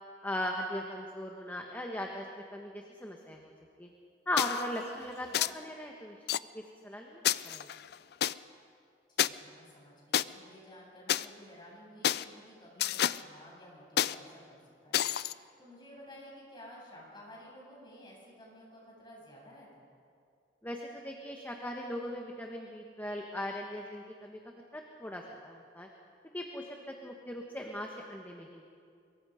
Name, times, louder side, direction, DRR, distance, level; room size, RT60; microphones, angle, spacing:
voice 1, 0.2-3.5 3.8-3.9 4.3-6.2 6.5-7.7 20.6-24.4 24.7-25.9 26.3-28.6, left 1 dB, 10° left, 1 dB, 1.4 m, -39 dB
sound 1, 4.4-4.7 5.3-5.5 6.3-6.4 7.2-8.3 9.2-9.3 10.1-10.2 11.1-11.3 12.0-12.2 12.8-13.2 14.0-14.1 14.9-15.3, left 11 dB, 65° left, 0.5 m, -29 dB
voice 2, 5.3-5.6 9.1-15.0 15.3-19.9, equal, 25° left, -4 dB, 7.9 m, -53 dB
24.0 x 23.0 x 5.1 m, 2.3 s
head